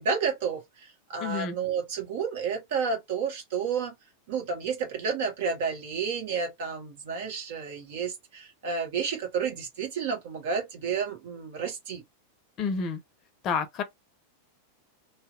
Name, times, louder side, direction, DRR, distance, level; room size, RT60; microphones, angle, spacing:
voice 1, 0.0-3.9 4.3-12.0, right 6 dB, 55° right, 1.0 m, -31 dB
voice 2, 1.2-1.5 12.6-13.0 13.4-13.8, left 5 dB, 35° left, 0.6 m, -29 dB
2.8 x 2.1 x 3.7 m
figure-of-eight pair, 90°, 0 cm